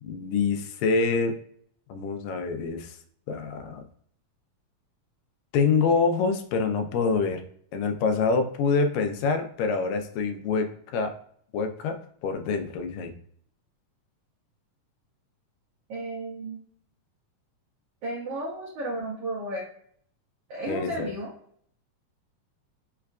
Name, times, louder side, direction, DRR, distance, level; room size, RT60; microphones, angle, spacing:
voice 1, 0.0-1.3 1.9-3.0 3.3-3.8 5.5-7.4 7.7-11.1 11.5-13.1 20.7-21.1, left 4 dB, 90° left, 6 dB, 2.3 m, -26 dB
voice 2, 15.9-16.6 18.0-19.6 20.5-21.3, right 1 dB, 80° right, -5 dB, 1.3 m, -33 dB
5.6 x 2.4 x 2.2 m, 0.62 s
omnidirectional pair, 3.9 m